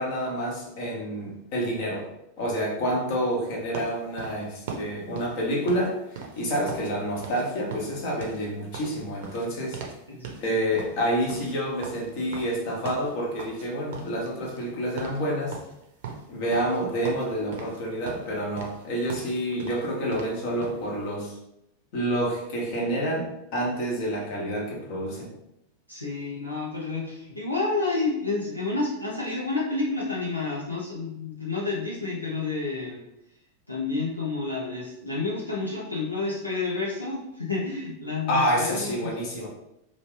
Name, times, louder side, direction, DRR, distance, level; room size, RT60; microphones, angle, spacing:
voice 1, 0.0-2.0 2.4-9.8 10.4-15.6 16.3-21.4 21.9-25.3 38.3-39.5, equal, 45° left, -1 dB, 0.9 m, -28 dB
sound 1, 3.7-6.9 7.2-7.4 7.7-10.0 10.2-10.5 10.8-13.7 13.9-14.7 15.0-15.2 15.5-16.8 17.0-17.8 18.1-20.8, right 5 dB, 55° right, 0.6 m, -39 dB
voice 2, 25.9-33.0 33.7-39.1, left 3 dB, 85° left, -6 dB, 0.7 m, -30 dB
3.0 x 2.4 x 3.3 m, 0.84 s
figure-of-eight pair, 90°, 0 cm